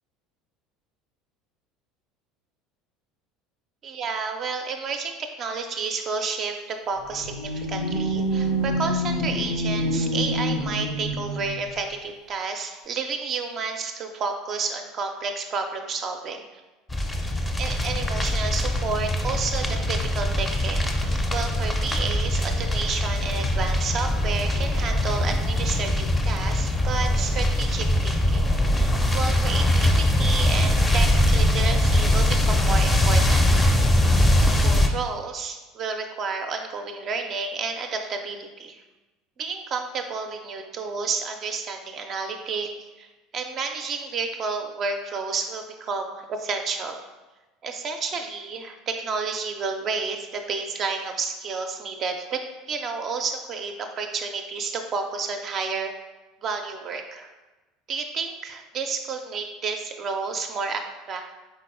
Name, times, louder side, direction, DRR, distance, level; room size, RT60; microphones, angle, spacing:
voice 1, 3.8-16.4 17.6-33.7 34.6-38.8 39.4-42.7 43.0-47.0 47.6-52.4 52.7-55.9 56.4-57.3 57.9-61.3, right 4 dB, 40° right, 5 dB, 0.4 m, -31 dB
sound 1, 7.0-11.8, equal, 70° left, 0.5 m, -27 dB
sound 2, 16.9-34.9, left 1 dB, 15° left, 0.5 m, -22 dB
4.2 x 3.9 x 2.5 m, 1.1 s
figure-of-eight pair, 65°, 0 cm